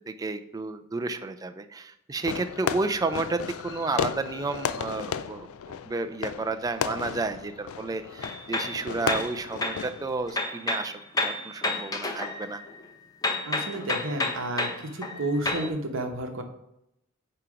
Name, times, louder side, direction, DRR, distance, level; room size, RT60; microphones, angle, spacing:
voice 1, 0.0-12.6, right 3 dB, 15° right, 8 dB, 0.4 m, -31 dB
Fireworks, 2.2-10.3, left 7 dB, 80° left, 0.4 m, -34 dB
sound 1, 8.2-9.9 10.3-12.9 13.2-15.7, left 2 dB, 15° left, 0.6 m, -31 dB
voice 2, 13.5-16.4, right 1 dB, 60° right, 4 dB, 1.0 m, -31 dB
8.7 x 2.9 x 4.8 m, 0.83 s
head